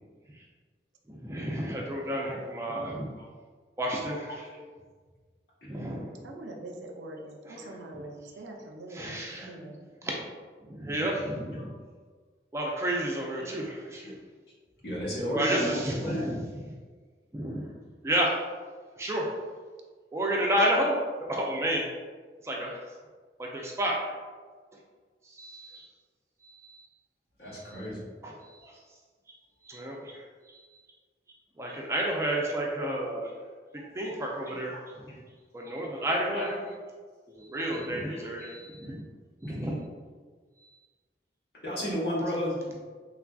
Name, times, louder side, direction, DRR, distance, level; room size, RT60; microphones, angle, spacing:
voice 1, 1.1-3.1 3.8-4.4 5.7-6.2 7.5-7.6 7.9-8.0 8.9-9.5 10.0-10.1 10.7-11.7 12.5-14.1 15.3-16.5 17.3-17.7 18.0-18.3 19.0-19.3 20.1-21.0 21.3-21.9 22.4-22.8 23.4-24.0 25.4-25.9 26.4-26.9 27.7-27.9 28.2-28.7 29.6-30.2 30.5-30.6 31.6-33.3 33.9-35.1 35.5-36.5 37.4-39.1 39.4-39.8, right 1 dB, 15° right, -2 dB, 0.3 m, -31 dB
voice 2, 6.2-9.8, right 2 dB, 90° right, 2 dB, 0.4 m, -43 dB
voice 3, 14.8-16.4 27.4-28.0 35.1-35.2 35.9-36.7 38.1-38.5 38.8-38.9 39.5-39.7 41.6-42.7, equal, 65° left, -6 dB, 1.0 m, -34 dB
3.2 x 2.4 x 2.2 m, 1.5 s
head